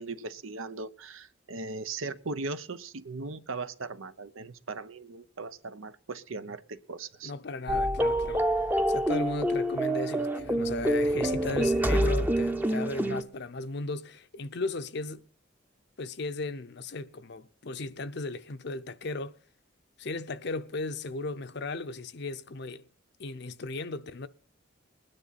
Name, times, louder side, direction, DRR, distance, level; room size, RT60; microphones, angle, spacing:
voice 1, 0.0-7.3, right 3 dB, 80° right, 0.9 m, -38 dB
voice 2, 7.2-8.5 8.9-15.3 16.0-19.3 20.0-22.8 23.2-24.3, left 3 dB, 55° left, 0.7 m, -36 dB
sound 1, 7.7-13.2, right 1 dB, 10° right, 0.7 m, -27 dB
20.5 x 9.8 x 4.1 m
head